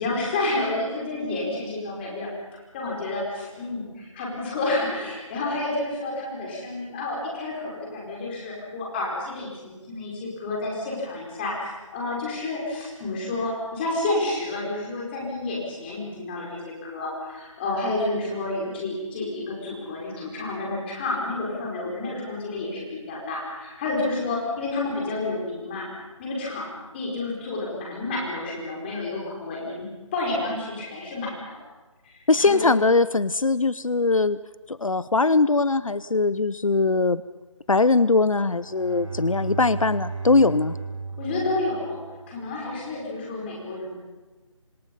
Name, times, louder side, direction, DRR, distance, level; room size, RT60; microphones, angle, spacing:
voice 1, 0.0-2.3 2.7-25.9 26.2-29.9 30.1-31.6 32.0-32.8 41.2-42.0 42.3-44.0, left 2 dB, 20° left, -3 dB, 5.1 m, -30 dB
voice 2, 32.3-34.4 34.7-37.2 37.7-40.8, left 3 dB, 85° left, 17 dB, 0.7 m, -21 dB
Bowed string instrument, 38.3-42.4, right 4 dB, 70° right, 5.9 m, -35 dB
28.0 x 26.0 x 5.5 m, 1.2 s
figure-of-eight pair, 160°, 17 cm